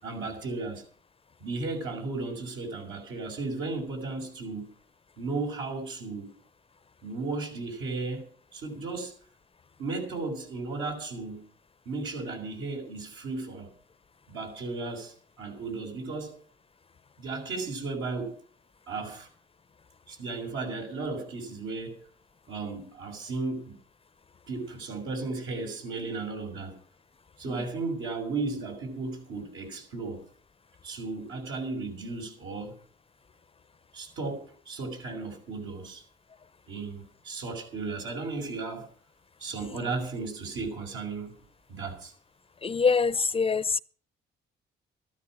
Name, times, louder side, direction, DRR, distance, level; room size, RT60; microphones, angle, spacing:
voice 1, 0.0-0.8 1.4-4.7 5.2-6.3 7.0-8.3 8.5-9.1 9.8-11.4 11.8-13.7 14.3-16.3 17.2-18.4 18.9-19.3 20.1-22.0 22.5-23.7 24.5-26.8 27.4-30.2 30.8-32.7 33.9-36.0 36.7-38.9 39.4-41.3 41.7-42.1, right 3 dB, 80° right, 6.3 m, -35 dB
voice 2, 42.7-43.8, left 5 dB, 30° left, 0.6 m, -24 dB
14.0 x 12.5 x 6.2 m
cardioid pair, 90°, 20 cm